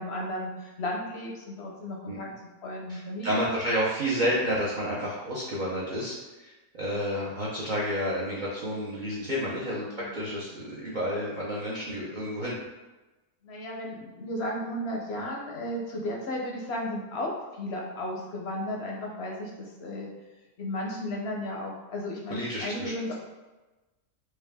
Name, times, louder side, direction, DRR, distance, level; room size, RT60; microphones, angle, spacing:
voice 1, 0.0-2.3 2.6-3.5 9.8-10.2 13.4-20.1 20.6-23.1, left 1 dB, 60° left, -1 dB, 0.7 m, -34 dB
voice 2, 2.9-12.6 22.3-23.1, equal, 65° right, -7 dB, 0.4 m, -30 dB
4.5 x 2.3 x 3.4 m, 1.1 s
omnidirectional pair, 1.7 m